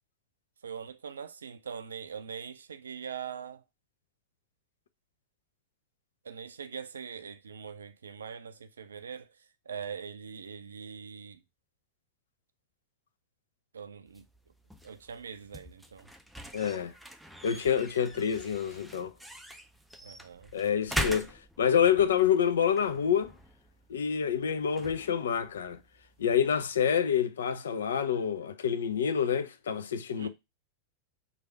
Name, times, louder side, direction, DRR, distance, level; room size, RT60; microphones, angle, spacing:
voice 1, 0.6-3.6 6.2-11.4 13.7-14.3 14.8-16.1 20.0-20.5 30.2-30.3, right 7 dB, 70° right, 0.4 m, -42 dB
sound 1, 14.1-26.8, equal, ahead, 0.4 m, -43 dB
voice 2, 16.5-16.9 17.4-19.1 20.5-23.3 23.9-25.8 26.2-30.3, left 8 dB, 65° left, 0.4 m, -27 dB
3.2 x 2.4 x 4.4 m
figure-of-eight pair, 90°, 0 cm